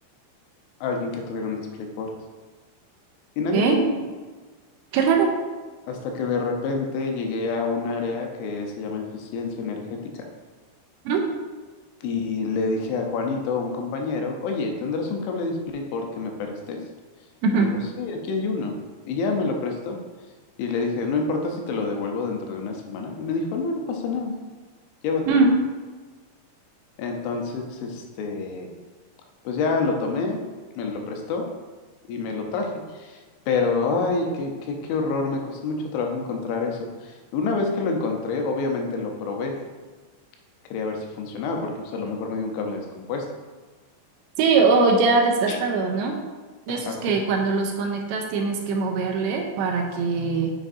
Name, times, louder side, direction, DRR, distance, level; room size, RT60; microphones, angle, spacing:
voice 1, 0.8-2.1 3.4-4.0 5.9-10.0 12.0-16.8 17.5-18.7 19.1-20.0 20.6-24.3 25.0-25.5 27.0-28.7 29.5-30.4 30.8-31.5 32.1-33.2 33.5-39.6 40.7-43.2 45.5-45.6 46.7-47.2, left 4 dB, 90° left, 2 dB, 3.3 m, -27 dB
voice 2, 4.9-5.3 11.1-11.2 17.4-17.7 25.3-25.5 44.4-46.2 46.7-50.5, right 4 dB, 80° right, 1 dB, 2.8 m, -21 dB
7.4 x 6.5 x 2.7 m, 1.4 s
omnidirectional pair, 5.3 m